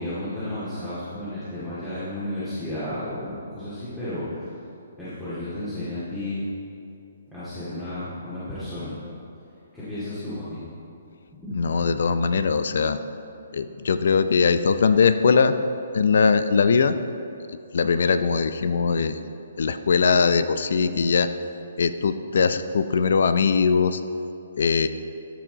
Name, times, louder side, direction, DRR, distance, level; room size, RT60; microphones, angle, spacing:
voice 1, 0.0-4.4 5.0-6.4 7.3-9.0 9.7-10.6 11.3-11.7, left 1 dB, 5° left, -14 dB, 2.3 m, -33 dB
voice 2, 11.5-13.0 13.5-15.5 15.9-17.0 17.7-19.2 19.6-21.3 21.8-24.0 24.6-24.9, left 5 dB, 70° left, 11 dB, 0.5 m, -21 dB
13.5 x 6.2 x 4.0 m, 2.7 s
hypercardioid pair, 145°, 0 cm